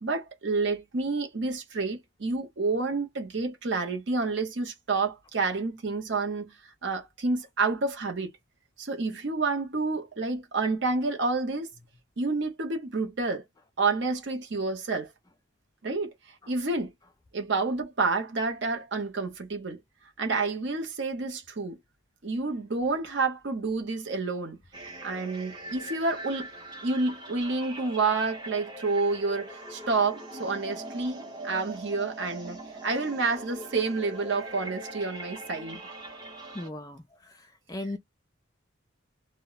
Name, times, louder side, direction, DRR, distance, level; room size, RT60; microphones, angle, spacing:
voice 1, 0.0-6.5 6.8-8.3 8.8-11.7 12.2-13.4 13.8-15.1 15.8-16.1 16.5-16.9 17.3-19.8 20.2-21.8 22.2-24.6 25.0-26.5 26.8-35.8, right 3 dB, 60° right, 0.7 m, -29 dB
sound 1, 24.7-36.7, right 1 dB, 20° right, 0.7 m, -42 dB
voice 2, 36.5-37.0 37.7-38.0, left 1 dB, 20° left, 0.3 m, -35 dB
2.1 x 2.0 x 3.8 m
head